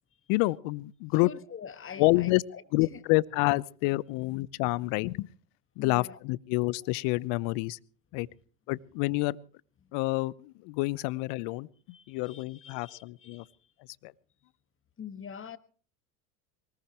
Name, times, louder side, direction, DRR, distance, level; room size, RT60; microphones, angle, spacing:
voice 1, 0.3-1.3 2.0-2.4 2.7-5.3 5.8-7.8 8.1-8.3 8.7-9.4 9.9-11.7 12.1-13.4 14.0-14.1, left 22 dB, 60° left, 0.9 m, -28 dB
voice 2, 1.2-2.6 2.9-3.0 5.8-6.2 11.9-13.5 15.0-15.6, left 7 dB, 25° left, 1.7 m, -45 dB
23.0 x 19.5 x 3.1 m
hypercardioid pair, 85°, 47 cm